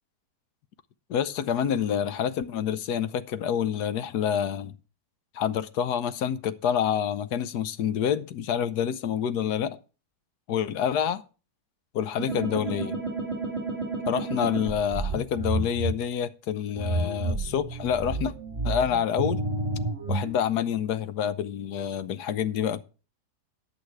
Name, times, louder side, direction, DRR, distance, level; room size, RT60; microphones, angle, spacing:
voice 1, 1.1-4.7 5.3-9.8 10.5-11.2 11.9-13.0 14.1-18.3 18.6-19.4 20.1-22.8, left 8 dB, 75° left, 1.3 m, -27 dB
sound 1, 12.2-15.9 16.8-20.3, right 2 dB, 25° right, 2.7 m, -30 dB
10.5 x 8.4 x 4.6 m
omnidirectional pair, 1.8 m